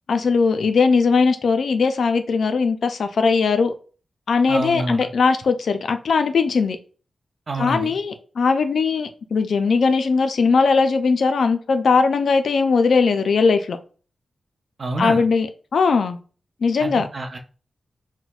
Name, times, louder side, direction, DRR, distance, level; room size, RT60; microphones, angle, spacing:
voice 1, 0.1-3.7 4.3-6.8 7.6-13.8 15.0-16.2 16.6-17.1, left 4 dB, 75° left, 0.3 m, -19 dB
voice 2, 4.5-5.1 7.5-7.9 14.8-15.2 16.8-17.4, right 2 dB, 50° right, 0.5 m, -27 dB
4.0 x 2.1 x 2.3 m
cardioid pair, 70°, 0 cm